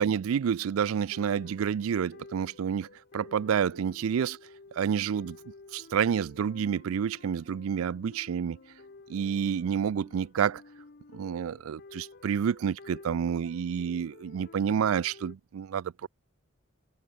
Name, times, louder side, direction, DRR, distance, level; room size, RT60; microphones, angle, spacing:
voice 1, 0.0-2.9 3.1-4.4 4.8-5.4 5.7-8.6 9.1-10.6 11.1-16.1, right 7 dB, 75° right, 0.4 m, -29 dB
sound 1, 0.9-15.4, left 3 dB, 45° left, 0.7 m, -52 dB
head